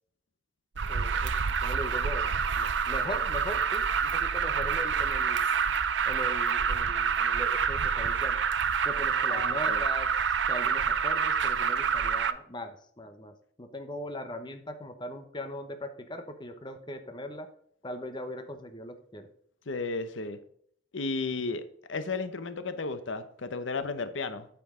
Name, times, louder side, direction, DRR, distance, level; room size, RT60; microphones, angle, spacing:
Alarm, 0.8-12.3, right 6 dB, 70° right, 0.6 m, -27 dB
voice 1, 0.9-5.4 6.1-8.4 8.8-10.1 10.5-13.3 13.6-17.5 17.8-19.3, left 1 dB, 25° left, 7 dB, 0.9 m, -40 dB
voice 2, 9.3-9.8 19.7-20.4 20.9-24.5, left 3 dB, 80° left, 11 dB, 0.8 m, -34 dB
8.4 x 7.0 x 3.7 m, 0.65 s
head